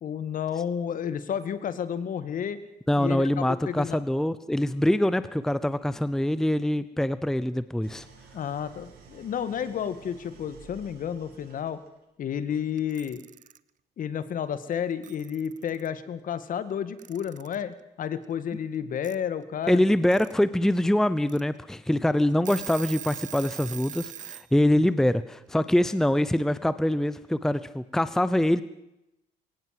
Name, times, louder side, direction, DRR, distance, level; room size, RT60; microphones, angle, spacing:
voice 1, 0.0-2.6 3.0-4.0 8.3-11.8 12.2-13.2 14.0-19.8 24.7-24.9, left 8 dB, 55° left, 13 dB, 2.0 m, -31 dB
voice 2, 2.9-8.0 19.7-28.6, left 1 dB, 5° left, 15 dB, 0.8 m, -24 dB
Idling, 7.8-12.0, right 5 dB, 65° right, 7.2 m, -52 dB
Alarm / Clock, 12.8-13.6 14.7-14.8 15.0-15.9 17.0-17.6 19.0-19.2 19.9-20.3 20.8-20.9 21.3-21.4 21.9-22.0 22.3-24.5, right 10 dB, 50° right, 0.9 m, -41 dB
22.5 x 18.0 x 7.7 m, 0.87 s
cardioid pair, 110°, 17 cm